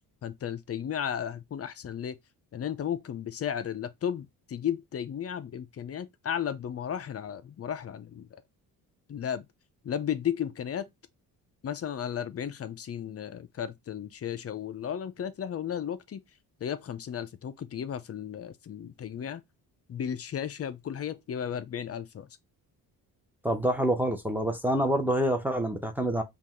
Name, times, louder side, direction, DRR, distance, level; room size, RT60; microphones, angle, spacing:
voice 1, 0.2-2.2 2.5-8.4 9.1-9.4 9.8-10.9 11.6-16.2 16.6-19.4 19.9-22.3, left 9 dB, 40° left, 0.5 m, -34 dB
voice 2, 23.4-26.2, right 1 dB, 5° right, 0.8 m, -27 dB
5.3 x 2.4 x 3.0 m
cardioid pair, 85°, 37 cm